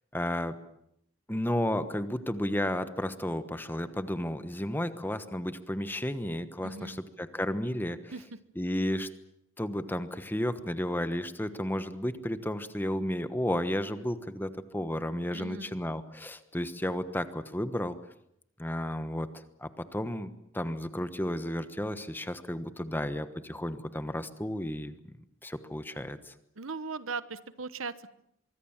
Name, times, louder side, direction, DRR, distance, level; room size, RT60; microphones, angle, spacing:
voice 1, 0.1-0.6 1.3-8.1 8.6-9.1 9.6-18.0 18.6-19.3 19.6-24.9 25.4-26.3, left 1 dB, 10° left, 11 dB, 1.2 m, -33 dB
voice 2, 6.6-7.0 8.1-8.2 15.3-15.7 26.6-28.1, right 4 dB, 85° right, 14 dB, 1.2 m, -38 dB
24.0 x 24.0 x 7.4 m, 0.76 s
head